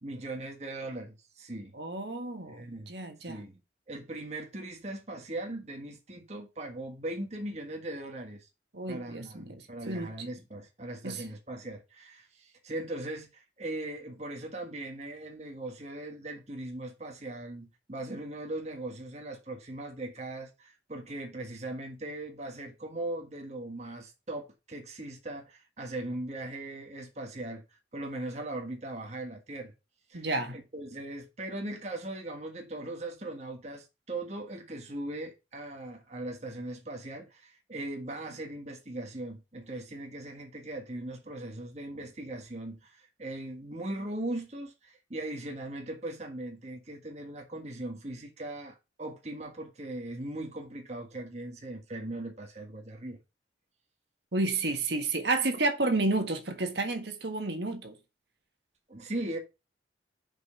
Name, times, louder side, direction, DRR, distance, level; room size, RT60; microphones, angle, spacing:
voice 1, 0.0-1.7 2.5-2.9 3.3-3.6 3.9-8.5 8.9-27.6 27.9-29.7 30.1-30.3 30.5-53.2 58.9-59.4, right 1 dB, 40° right, 1.5 m, -39 dB
voice 2, 1.7-3.4 8.7-10.1 11.0-11.2 30.1-30.6 54.3-57.9, right 2 dB, 70° right, 1.6 m, -31 dB
6.2 x 5.3 x 6.6 m
head